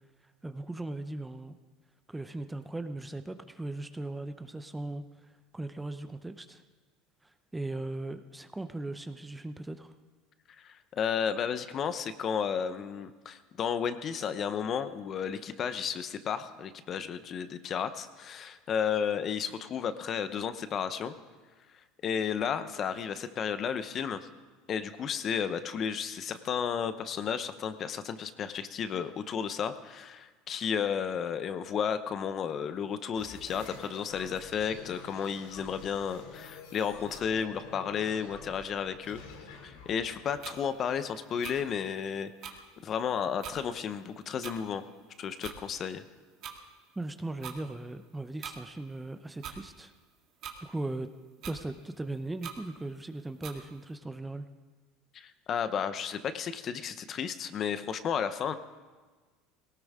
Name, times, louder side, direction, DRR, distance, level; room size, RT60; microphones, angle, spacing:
voice 1, 0.4-1.6 2.1-6.6 7.2-9.9 47.0-49.9 50.6-51.1 51.4-54.5, right 2 dB, 10° right, 10 dB, 0.6 m, -38 dB
voice 2, 10.6-21.1 22.0-24.3 24.7-39.2 39.6-42.3 42.8-44.8 45.2-46.0 55.1-58.5, left 7 dB, 40° left, 11 dB, 0.8 m, -33 dB
sound 1, 33.1-41.4, left 5 dB, 90° left, 2.6 m, -49 dB
sound 2, 40.4-40.6 41.4-41.6 42.4-42.6 43.4-43.6 44.4-44.6 45.4-45.6 46.4-46.5 47.4-47.6 48.4-48.6 49.4-49.6 50.4-50.6 51.4-51.6 52.4-52.6 53.4-53.6, right 9 dB, 50° right, 1.9 m, -41 dB
18.0 x 18.0 x 3.6 m, 1.4 s
supercardioid pair, 115°, 0 cm